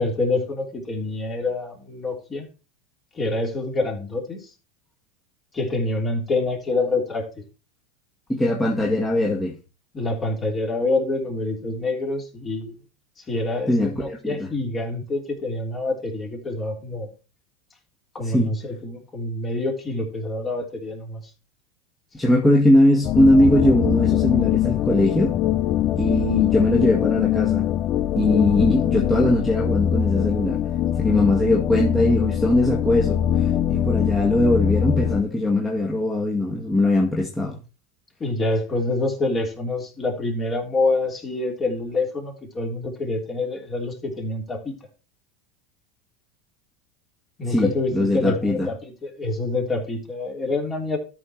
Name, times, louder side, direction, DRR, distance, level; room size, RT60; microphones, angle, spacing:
voice 1, 0.0-2.5 3.1-4.5 5.5-7.2 9.9-12.7 13.3-17.1 18.1-21.3 38.2-44.7 47.4-51.0, left 2 dB, 30° left, 3.3 m, -26 dB
voice 2, 8.3-9.6 13.7-14.5 18.2-18.5 22.1-25.4 26.0-27.7 28.1-30.6 31.0-37.6 47.5-48.7, left 1 dB, 10° left, 2.1 m, -20 dB
sound 1, 23.0-35.2, left 11 dB, 45° left, 0.5 m, -22 dB
13.0 x 4.7 x 4.6 m
hypercardioid pair, 85°, 0 cm